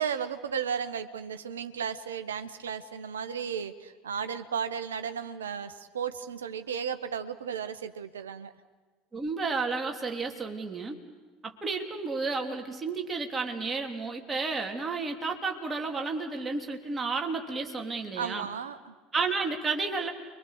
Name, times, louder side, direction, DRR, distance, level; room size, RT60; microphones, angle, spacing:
voice 1, 0.0-8.5 18.2-18.9, right 7 dB, 75° right, 10 dB, 1.2 m, -34 dB
voice 2, 9.1-11.0 11.4-18.5 19.1-20.1, right 4 dB, 20° right, 2 dB, 3.3 m, -32 dB
29.5 x 24.0 x 6.8 m, 1.3 s
figure-of-eight pair, 70°, 0 cm